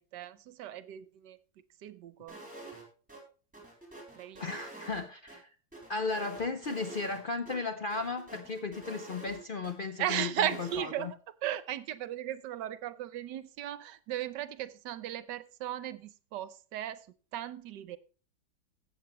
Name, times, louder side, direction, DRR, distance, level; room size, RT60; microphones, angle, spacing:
voice 1, 0.0-1.4 1.8-2.4 4.2-4.4 10.0-11.2 11.4-17.1 17.3-18.0, right 11 dB, 75° right, 1.3 m, -36 dB
sound 1, 2.3-2.8 3.1-3.2 3.5-5.4 5.7-7.2 7.5-7.6 7.9-9.7 10.1-10.8, right 2 dB, 5° right, 4.0 m, -47 dB
voice 2, 4.4-5.5 5.9-11.1, left 4 dB, 80° left, 0.4 m, -35 dB
14.5 x 8.1 x 3.0 m
omnidirectional pair, 2.0 m